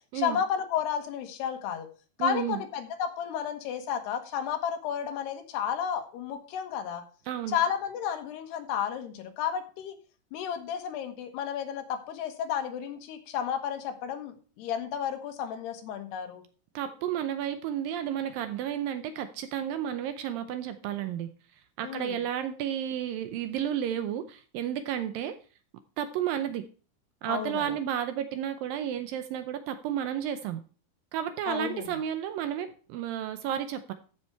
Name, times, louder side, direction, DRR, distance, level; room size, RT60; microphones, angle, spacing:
voice 1, 0.1-1.9 2.2-7.0 7.5-10.0 10.3-16.4 21.8-22.2 27.3-27.8 31.5-31.9, left 8 dB, 85° left, 6 dB, 3.4 m, -32 dB
voice 2, 2.2-2.6 7.3-7.6 16.8-21.3 21.8-25.3 26.0-26.7 27.2-30.6 31.1-33.9, right 10 dB, 75° right, 10 dB, 2.2 m, -32 dB
14.0 x 6.0 x 4.5 m, 0.37 s
omnidirectional pair, 4.6 m